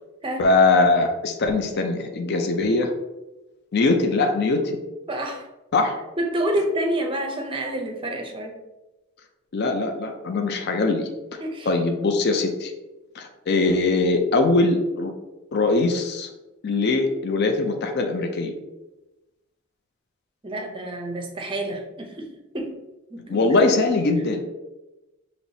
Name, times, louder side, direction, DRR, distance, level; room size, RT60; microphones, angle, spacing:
voice 1, 0.4-2.9 3.7-4.8 5.7-6.0 9.5-11.4 11.7-12.7 13.1-15.1 15.5-16.3 16.6-18.5 23.3-24.4, left 3 dB, 50° left, 5 dB, 0.4 m, -21 dB
voice 2, 5.1-5.5 6.2-8.6 11.4-11.7 20.4-22.3 22.5-22.7 23.1-23.6, right 1 dB, 25° right, 2 dB, 0.6 m, -28 dB
4.7 x 3.0 x 2.7 m, 1.0 s
head